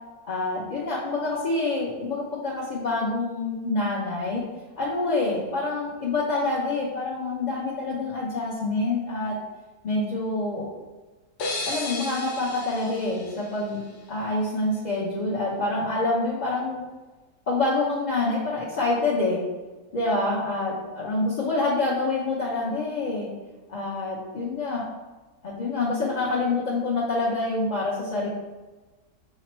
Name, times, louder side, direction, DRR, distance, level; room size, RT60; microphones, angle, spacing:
voice 1, 0.2-4.4 4.8-9.3 9.8-10.6 11.7-13.8 14.1-16.9 17.5-19.4 19.9-23.3 23.7-24.8 25.4-28.3, left 2 dB, 45° left, -6 dB, 0.6 m, -26 dB
sound 1, 11.4-14.2, left 2 dB, 80° left, 1.3 m, -34 dB
5.9 x 2.1 x 4.3 m, 1.2 s
omnidirectional pair, 1.7 m